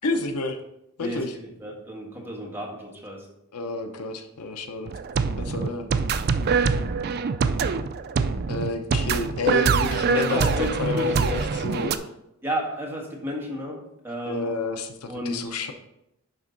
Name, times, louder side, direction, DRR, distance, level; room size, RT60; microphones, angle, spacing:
voice 1, 0.0-0.6 1.0-1.4 3.5-4.9 5.4-5.9 8.5-12.0 14.2-15.7, left 3 dB, 85° left, 6 dB, 0.8 m, -29 dB
voice 2, 1.0-3.2 5.5-5.7 10.1-11.0 12.4-14.5 15.1-15.4, equal, 10° right, -2 dB, 1.7 m, -32 dB
sound 1, 4.9-12.0, right 5 dB, 45° right, 0.4 m, -24 dB
11.0 x 3.6 x 3.9 m, 0.84 s
head